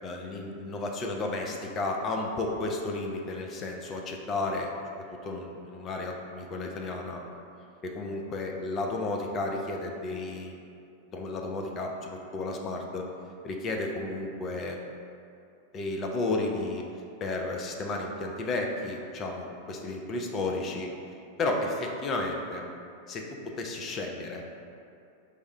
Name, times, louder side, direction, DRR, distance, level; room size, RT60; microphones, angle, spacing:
voice 1, 0.0-7.2 7.8-10.6 11.1-13.0 13.4-14.8 15.7-16.8 17.2-20.9 21.4-22.6 23.1-24.4, left 2 dB, 30° left, 1 dB, 0.4 m, -33 dB
4.8 x 2.1 x 3.2 m, 2.5 s
figure-of-eight pair, 90°, 0 cm